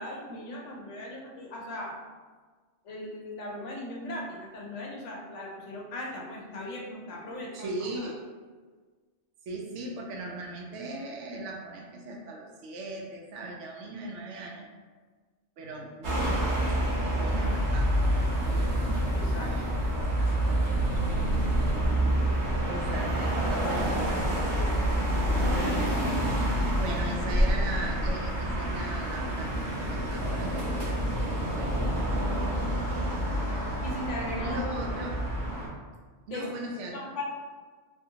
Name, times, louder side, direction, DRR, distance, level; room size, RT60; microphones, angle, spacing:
voice 1, 0.0-2.0 2.8-8.1 19.1-19.5 22.2-22.5 26.5-26.9 33.8-34.6 36.3-36.4 36.9-37.2, left 1 dB, 75° left, -2 dB, 1.0 m, -38 dB
voice 2, 7.5-8.2 9.4-14.7 15.6-18.7 19.3-20.6 20.9-21.3 21.8-22.1 22.6-24.8 26.7-33.7 34.4-35.2 36.3-37.0, right 1 dB, 75° right, 0 dB, 0.9 m, -40 dB
sound 1, 16.0-35.7, right 1 dB, 50° right, 0.7 m, -27 dB
2.7 x 2.5 x 2.7 m, 1.4 s
omnidirectional pair, 1.3 m